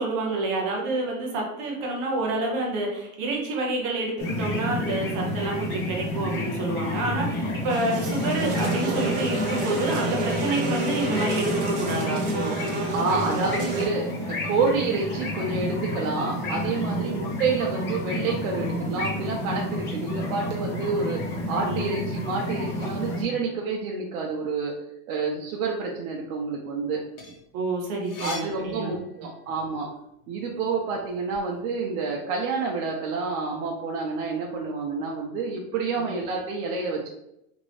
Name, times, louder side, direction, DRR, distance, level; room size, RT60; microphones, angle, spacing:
voice 1, 0.0-12.6 17.0-17.2 21.6-22.0 27.5-28.9, right 2 dB, 25° right, 0 dB, 0.3 m, -28 dB
sound 1, 4.2-23.2, left 1 dB, 25° left, 0.5 m, -30 dB
sound 2, 7.7-13.9, right 2 dB, 50° right, 1.0 m, -30 dB
voice 2, 12.9-24.7 25.1-27.0 28.2-29.9 30.3-37.1, right 4 dB, 65° right, -2 dB, 0.7 m, -28 dB
sound 3, 26.9-29.6 30.0-31.4, left 3 dB, 75° left, 1.0 m, -42 dB
3.0 x 2.6 x 3.1 m, 0.80 s
supercardioid pair, 160°, 43 cm